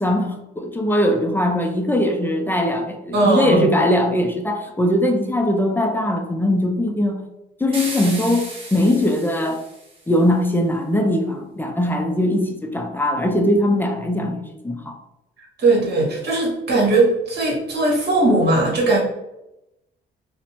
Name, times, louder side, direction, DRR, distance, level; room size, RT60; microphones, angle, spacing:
voice 1, 0.0-7.2 7.6-9.6 10.1-15.0, left 1 dB, 10° left, 3 dB, 0.4 m, -20 dB
voice 2, 3.1-3.7 15.6-19.0, right 2 dB, 55° right, -3 dB, 1.2 m, -18 dB
sound 1, 7.7-10.1, right 2 dB, 25° right, 1.0 m, -34 dB
2.6 x 2.1 x 2.9 m, 0.91 s
cardioid pair, 90°, 20 cm